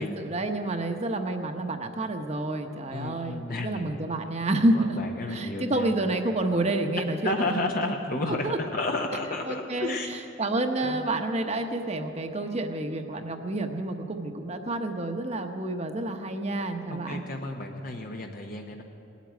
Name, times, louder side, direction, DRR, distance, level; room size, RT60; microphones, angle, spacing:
voice 1, 0.0-5.0 5.3-7.6 8.4-8.6 9.5-17.2, right 2 dB, 35° right, 5 dB, 0.9 m, -29 dB
voice 2, 2.9-3.9 4.7-5.9 7.2-10.1 10.8-11.0 16.9-18.8, left 2 dB, 45° left, 2 dB, 0.8 m, -32 dB
19.0 x 8.3 x 9.3 m, 2.9 s
head